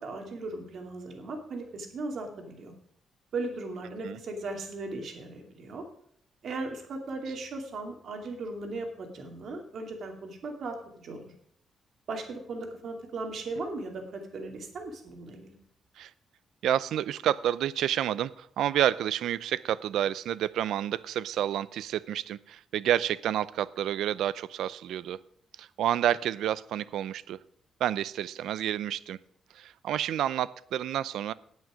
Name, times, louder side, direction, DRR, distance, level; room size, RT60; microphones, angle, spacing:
voice 1, 0.0-2.7 3.3-5.8 6.4-11.3 12.1-15.6, right 3 dB, 55° right, 3 dB, 2.5 m, -37 dB
voice 2, 16.6-25.2 25.6-27.4 27.8-29.2 29.5-31.3, right 11 dB, 85° right, 18 dB, 0.4 m, -29 dB
18.5 x 6.3 x 5.1 m, 0.69 s
cardioid pair, 150°, 0 cm